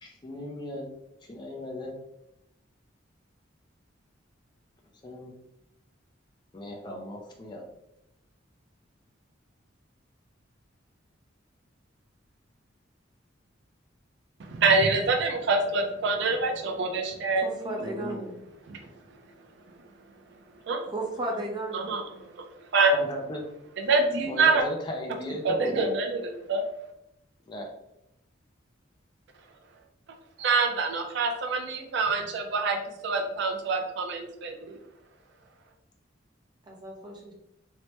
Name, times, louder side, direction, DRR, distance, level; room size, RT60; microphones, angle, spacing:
voice 1, 0.0-0.9 1.3-1.9 5.0-5.3 6.5-7.6 17.8-18.2 22.9-23.4 24.2-25.9 27.5-27.7, left 1 dB, 20° left, 1 dB, 0.4 m, -36 dB
voice 2, 14.4-17.7 18.7-18.8 20.7-20.8 21.7-22.4 22.7-22.9 23.8-24.6 25.4-26.6 30.4-34.8, right 3 dB, 60° right, 3 dB, 0.4 m, -26 dB
voice 3, 17.4-18.3 20.9-21.9 36.7-37.3, right 1 dB, 20° right, -2 dB, 0.6 m, -34 dB
3.2 x 2.1 x 2.8 m, 0.82 s
head